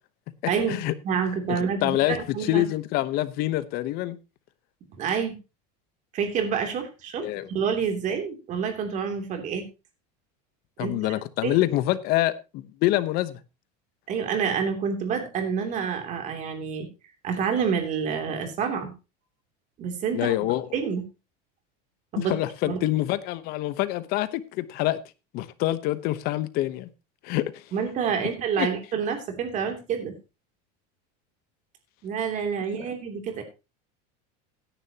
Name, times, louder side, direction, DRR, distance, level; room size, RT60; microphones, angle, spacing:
voice 1, 0.5-0.8 1.0-2.6 5.0-5.4 6.1-9.6 10.8-10.9 11.4-11.5 14.1-16.9 17.2-18.9 19.8-20.3 20.7-21.0 22.1-22.3 22.6-22.8 27.7-30.1 32.0-33.4, right 6 dB, 35° right, 3.0 m, -28 dB
voice 2, 1.5-4.2 7.2-7.5 10.8-13.4 20.1-20.6 22.2-25.0 25.3-26.9 27.2-27.6 28.6-28.7, left 15 dB, 45° left, 1.0 m, -26 dB
16.5 x 10.5 x 2.9 m
supercardioid pair, 150°, 21 cm